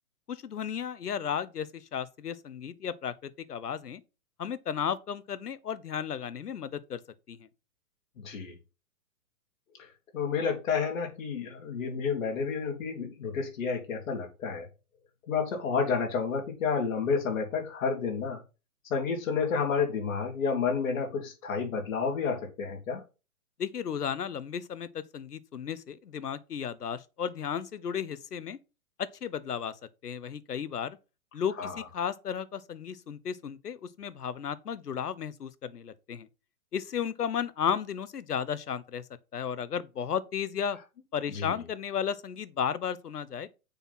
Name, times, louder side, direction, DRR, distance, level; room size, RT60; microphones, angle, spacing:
voice 1, 0.3-4.0 4.4-7.0 7.3-7.5 23.6-28.6 29.0-29.8 30.0-31.0 31.3-36.3 36.7-39.0 39.3-40.8 41.1-43.5, left 8 dB, 85° left, 1.0 m, -34 dB
voice 2, 8.2-8.6 9.8-9.9 10.1-14.7 15.3-18.4 18.9-23.0 31.6-31.8 41.3-41.5, left 5 dB, 60° left, 3.6 m, -30 dB
7.0 x 5.7 x 5.8 m
hypercardioid pair, 135°, 45 cm